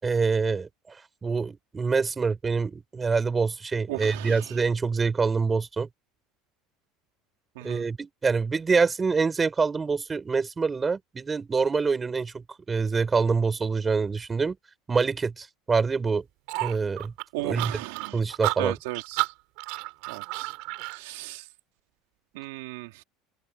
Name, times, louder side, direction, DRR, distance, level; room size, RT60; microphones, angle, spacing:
voice 1, 0.0-5.9 7.6-14.6 14.9-16.3 16.6-17.1 17.4-17.7 18.1-18.7, right 4 dB, 15° right, 5.9 m, -26 dB
voice 2, 3.9-4.5 7.5-7.8 17.3-18.2 18.6-19.3 20.1-20.5 20.9-21.4 22.3-22.9, right 21 dB, 85° right, 3.1 m, -35 dB
sound 1, 16.5-21.0, right 27 dB, 70° right, 4.3 m, -32 dB
open air
cardioid pair, 145°, 0 cm